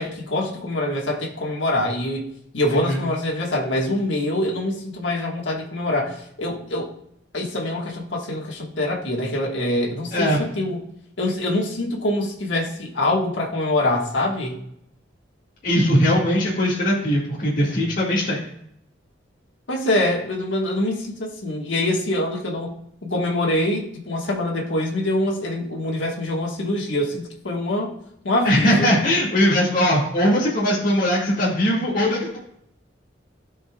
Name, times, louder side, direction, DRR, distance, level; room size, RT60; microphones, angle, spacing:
voice 1, 0.0-2.2 2.5-6.9 7.3-10.3 10.6-10.8 11.2-14.6 17.6-17.8 19.7-22.7 23.0-27.9 28.2-28.9, left 1 dB, 85° left, -1 dB, 1.5 m, -24 dB
voice 2, 15.6-18.4 28.4-32.4, equal, 45° left, -6 dB, 1.9 m, -20 dB
15.0 x 5.3 x 2.3 m, 0.73 s
head